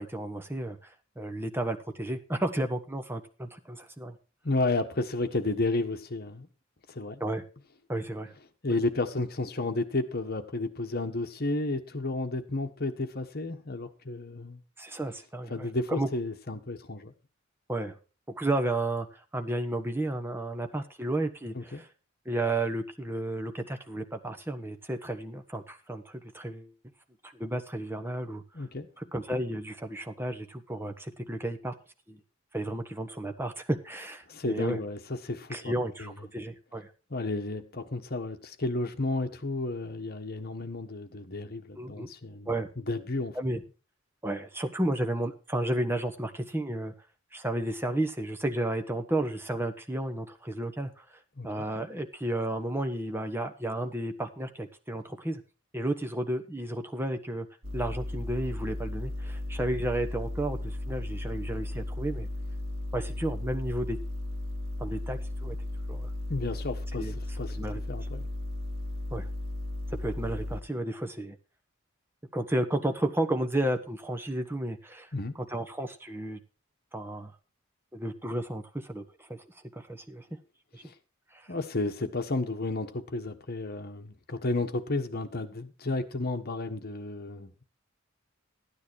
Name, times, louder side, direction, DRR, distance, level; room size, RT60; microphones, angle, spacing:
voice 1, 0.0-4.2 7.2-7.4 7.9-8.3 14.8-16.1 17.7-17.9 18.3-19.1 19.3-21.9 22.2-26.7 27.2-28.4 29.0-31.7 32.1-32.2 32.5-34.8 35.5-36.9 41.8-42.1 42.5-42.7 43.3-43.6 44.2-46.9 47.3-51.0 51.4-55.4 55.7-57.5 57.7-62.3 62.9-64.0 64.8-65.5 65.9-66.1 66.9-67.1 67.6-67.8 69.1-69.3 70.0-71.4 72.3-75.1 75.5-76.4 76.9-77.3 77.9-79.4 79.7-80.2 80.7-80.8 81.3-81.5, right 1 dB, 10° right, 1.3 m, -32 dB
voice 2, 4.4-6.5 6.9-7.2 8.6-14.6 15.5-17.1 21.5-21.8 28.5-28.9 34.3-35.7 36.0-36.1 37.1-42.5 42.9-43.3 51.4-51.5 66.3-67.6 67.9-68.3 75.1-75.3 80.8-80.9 81.5-87.6, left 2 dB, 50° left, 1.4 m, -32 dB
sound 1, 57.6-70.6, left 1 dB, 75° right, 3.0 m, -35 dB
13.5 x 9.7 x 4.7 m
head